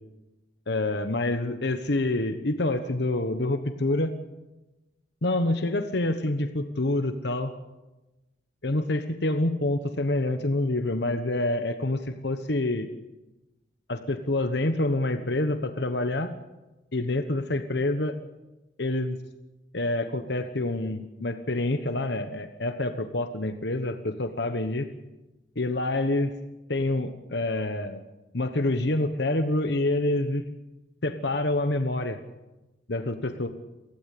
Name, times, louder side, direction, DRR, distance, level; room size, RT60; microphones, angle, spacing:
voice 1, 0.7-4.1 5.2-7.5 8.6-12.9 13.9-16.3 16.9-18.1 18.8-19.2 19.7-24.9 25.6-26.3 26.7-28.0 28.3-30.4 31.0-32.2 32.9-33.5, left 2 dB, 60° left, 8 dB, 1.2 m, -27 dB
24.0 x 16.0 x 8.5 m, 1.1 s
head